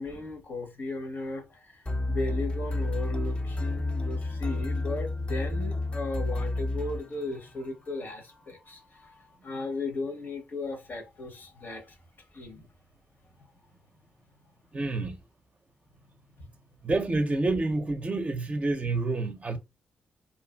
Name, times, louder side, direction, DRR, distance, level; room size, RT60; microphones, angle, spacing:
voice 1, 0.0-1.8 2.1-12.0 12.3-12.7 16.4-16.5, left 2 dB, 50° left, 0.8 m, -36 dB
sound 1, 1.9-7.5, left 2 dB, 25° left, 0.5 m, -30 dB
voice 2, 14.7-15.2 16.8-19.6, right 2 dB, 35° right, 0.5 m, -28 dB
2.6 x 2.4 x 2.3 m
supercardioid pair, 50°, 4 cm